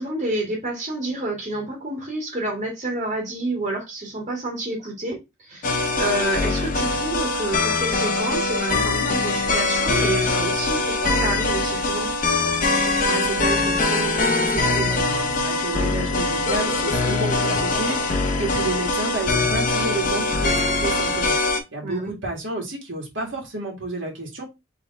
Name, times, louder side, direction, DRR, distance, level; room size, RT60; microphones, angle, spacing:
voice 1, 0.0-5.2 5.5-5.7 6.0-12.1 15.8-16.0 21.8-22.1, right 1 dB, 35° right, 2.0 m, -28 dB
sound 1, 5.6-21.6, left 3 dB, 40° left, 0.8 m, -22 dB
voice 2, 12.8-24.4, right 3 dB, 65° right, 1.8 m, -31 dB
3.6 x 3.5 x 4.0 m
head